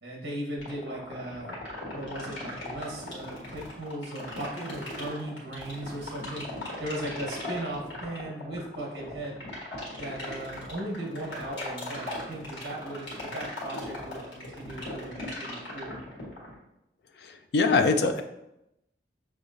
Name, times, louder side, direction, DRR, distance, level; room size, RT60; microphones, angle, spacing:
voice 1, 0.0-1.5 1.9-6.4 6.8-9.4 10.0-16.0, right 1 dB, 65° right, -2 dB, 1.2 m, -37 dB
sound 1, 0.6-16.5, left 2 dB, 80° left, 1.6 m, -38 dB
voice 2, 17.2-18.2, left 4 dB, 65° left, 6 dB, 0.4 m, -23 dB
6.3 x 2.9 x 2.7 m, 0.87 s
head